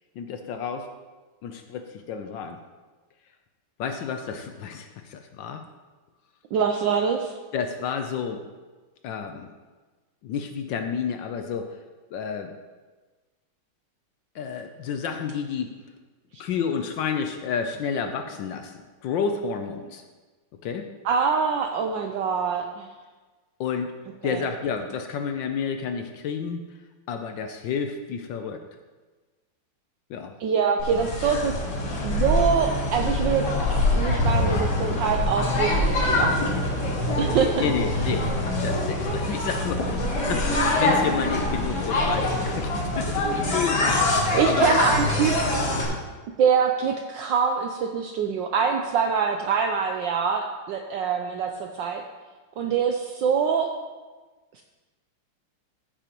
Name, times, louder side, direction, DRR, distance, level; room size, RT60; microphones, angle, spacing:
voice 1, 0.2-0.9 1.4-2.6 3.8-5.6 7.5-8.4 9.0-9.5 10.2-11.8 12.1-12.5 14.3-15.7 16.4-20.0 20.6-20.9 23.6-23.9 24.2-26.6 27.1-28.6 30.1-30.3 37.6-44.8, left 6 dB, 70° left, 6 dB, 1.2 m, -30 dB
voice 2, 6.5-7.3 21.0-22.9 24.2-24.5 30.4-31.5 32.0-33.5 33.9-36.8 37.2-37.6 38.0-38.1 44.3-45.4 46.4-52.0 52.6-53.7 54.5-54.6, right 6 dB, 75° right, 3 dB, 1.1 m, -24 dB
sound 1, 30.8-45.8, left 1 dB, 55° left, 2.2 m, -24 dB
14.5 x 7.0 x 2.9 m, 1.3 s
omnidirectional pair, 2.4 m